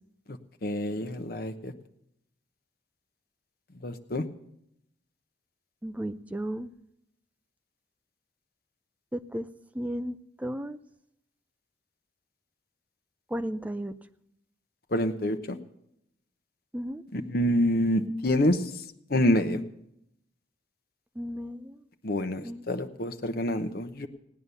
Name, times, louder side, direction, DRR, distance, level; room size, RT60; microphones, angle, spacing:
voice 1, 0.6-1.7 3.8-4.2 14.9-15.6 17.1-18.6 19.1-19.6 22.0-24.1, left 1 dB, 55° left, 7 dB, 0.9 m, -27 dB
voice 2, 5.8-6.7 9.1-9.5 9.7-10.8 13.3-14.0 16.7-17.0 21.2-21.8 22.4-22.6, equal, 10° right, 10 dB, 0.4 m, -34 dB
17.0 x 9.5 x 6.9 m, 0.77 s
head